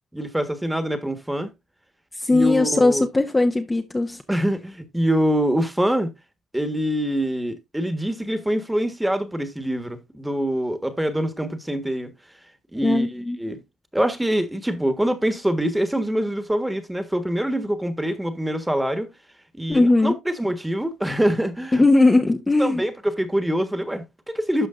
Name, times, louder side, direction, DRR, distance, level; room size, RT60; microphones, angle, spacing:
voice 1, 0.1-1.5 2.3-3.0 4.3-6.1 6.5-12.1 12.7-13.6 13.9-19.1 19.5-21.8 22.6-24.7, equal, 5° right, 1.4 m, -24 dB
voice 2, 2.2-4.2 12.7-13.4 19.7-20.2 21.7-22.8, left 2 dB, 15° left, 0.8 m, -19 dB
12.5 x 5.0 x 2.5 m
cardioid pair, 90°, 0 cm